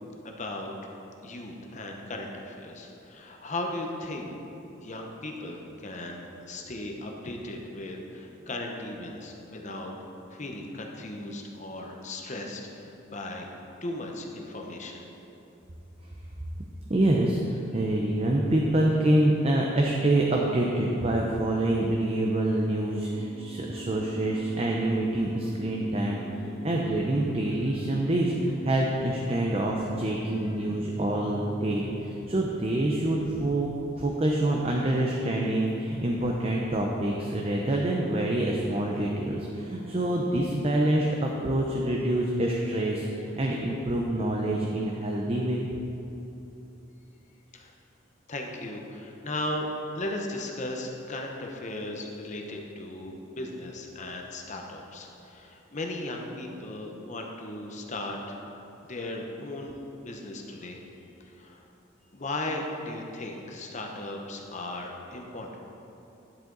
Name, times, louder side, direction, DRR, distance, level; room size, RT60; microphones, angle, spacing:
voice 1, 0.2-0.7 1.2-4.3 4.8-9.9 10.3-13.5 13.8-15.0 47.5-47.7 48.3-49.7 49.9-58.4 58.8-60.8 61.2-61.6 62.1-65.6, left 1 dB, 40° left, 1 dB, 0.9 m, -37 dB
voice 2, 16.9-33.7 34.0-45.7, right 1 dB, 30° right, -1 dB, 0.6 m, -26 dB
sound 1, 23.1-32.0, right 1 dB, 15° right, 1.2 m, -42 dB
10.5 x 7.6 x 3.9 m, 2.9 s
head